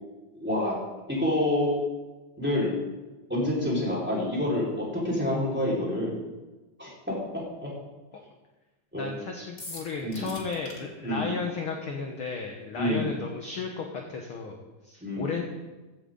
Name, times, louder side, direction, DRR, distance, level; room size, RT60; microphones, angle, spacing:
voice 1, 0.3-0.7 1.1-1.8 2.4-2.7 3.3-6.2 6.8-7.1 7.6-7.7 8.9-9.1 10.0-10.3 11.0-11.4 12.8-13.1 15.0-15.4, left 1 dB, 5° right, -6 dB, 4.8 m, -28 dB
voice 2, 8.9-14.6 14.8-15.4, left 5 dB, 55° left, 1 dB, 1.8 m, -34 dB
sound 1, 9.6-10.8, left 2 dB, 30° left, 2.2 m, -42 dB
15.5 x 12.5 x 4.0 m, 1.1 s
omnidirectional pair, 3.4 m